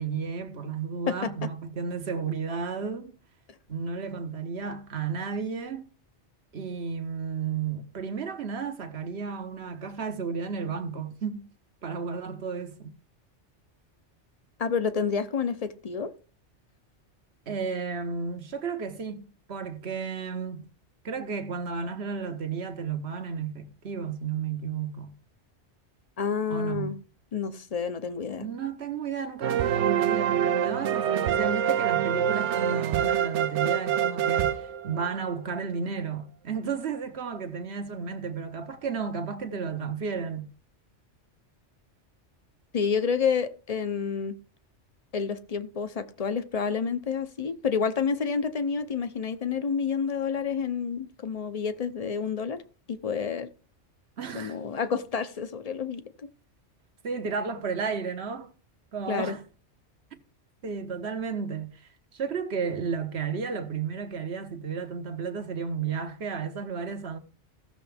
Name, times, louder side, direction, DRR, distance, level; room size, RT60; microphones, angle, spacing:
voice 1, 0.0-3.2 3.7-5.8 6.5-11.5 11.8-12.9 17.5-20.7 21.0-25.2 26.5-27.0 28.4-40.5 54.2-54.6 57.0-58.5 58.9-59.4 60.6-67.2, right 5 dB, 65° right, 1.4 m, -33 dB
voice 2, 1.1-1.5 14.6-16.1 26.2-27.0 27.3-28.5 42.7-44.4 45.1-52.6 52.9-53.5 54.3-56.3 59.1-59.4, left 6 dB, 35° left, 0.8 m, -29 dB
sound 1, 29.4-35.3, right 9 dB, 80° right, 1.0 m, -26 dB
16.0 x 6.8 x 3.5 m
omnidirectional pair, 1.2 m